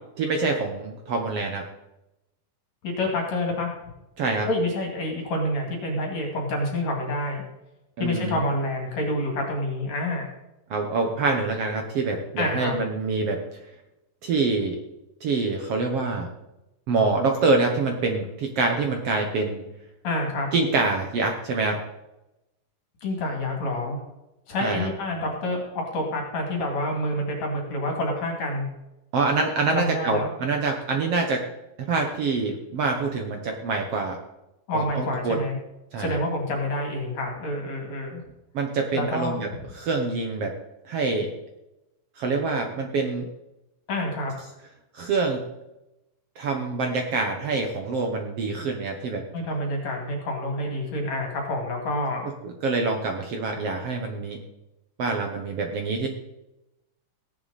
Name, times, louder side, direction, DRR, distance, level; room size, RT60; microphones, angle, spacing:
voice 1, 0.2-1.7 4.2-4.5 8.0-8.4 10.7-13.6 14.2-14.8 15.2-16.3 16.9-19.6 20.5-21.8 24.6-24.9 29.1-31.4 31.9-34.2 34.7-35.4 35.9-36.2 38.5-39.5 39.7-40.5 40.9-41.3 42.2-43.3 44.9-45.4 46.4-49.2 52.4-54.4 55.0-56.1, right 3 dB, 60° right, 3 dB, 1.8 m, -25 dB
voice 2, 2.8-3.8 4.5-7.4 8.0-10.3 12.4-12.8 20.0-20.5 23.0-24.0 24.5-28.7 29.6-30.3 34.7-35.6 36.0-38.2 38.9-39.4 43.9-44.3 49.3-52.3, left 1 dB, 55° left, 1 dB, 3.7 m, -28 dB
16.5 x 10.5 x 4.2 m, 0.93 s
omnidirectional pair, 3.8 m